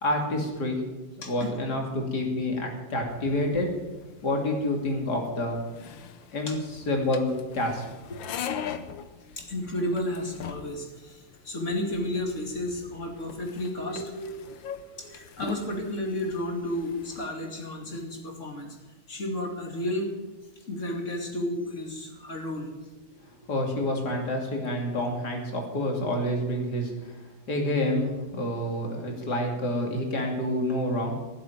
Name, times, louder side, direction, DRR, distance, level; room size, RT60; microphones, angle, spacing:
voice 1, 0.0-0.8 1.2-3.7 4.2-5.6 6.3-8.2 23.5-27.1 27.5-31.1, left 1 dB, 50° left, 1 dB, 3.2 m, -28 dB
voice 2, 1.2-1.6 6.5-6.6 9.4-14.5 15.0-18.8 19.1-20.1 20.7-22.7, left 1 dB, 35° left, 2 dB, 2.7 m, -32 dB
sound 1, 3.1-17.3, left 8 dB, 70° left, 1.5 m, -42 dB
16.0 x 7.8 x 9.1 m, 1.2 s
omnidirectional pair, 2.3 m